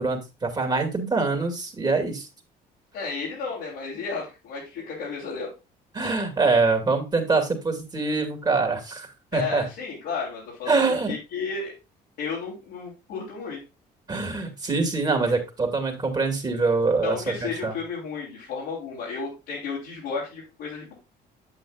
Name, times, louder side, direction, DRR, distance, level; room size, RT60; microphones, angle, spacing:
voice 1, 0.0-2.3 5.9-9.7 10.7-11.1 14.1-17.7, right 3 dB, 25° right, 3 dB, 2.3 m, -24 dB
voice 2, 2.9-5.5 9.3-10.8 11.1-11.7 12.2-13.6 17.0-20.9, left 5 dB, 90° left, -6 dB, 3.4 m, -33 dB
8.7 x 7.8 x 2.4 m, 0.28 s
cardioid pair, 110°, 17 cm